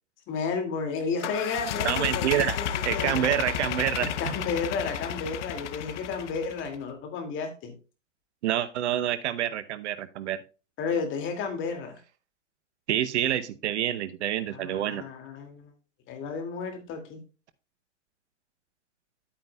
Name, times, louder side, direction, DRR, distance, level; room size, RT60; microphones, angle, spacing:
voice 1, 0.3-2.7 2.9-3.3 4.0-7.7 10.8-12.0 14.5-15.7 16.1-17.2, left 5 dB, 30° left, 5 dB, 2.4 m, -32 dB
sound 1, 1.2-6.7, left 9 dB, 70° left, 0.9 m, -32 dB
voice 2, 1.8-2.6 2.8-4.1 8.4-10.4 12.9-15.0, right 11 dB, 65° right, 13 dB, 0.9 m, -27 dB
11.0 x 8.8 x 2.3 m, 0.33 s
hypercardioid pair, 125°, 37 cm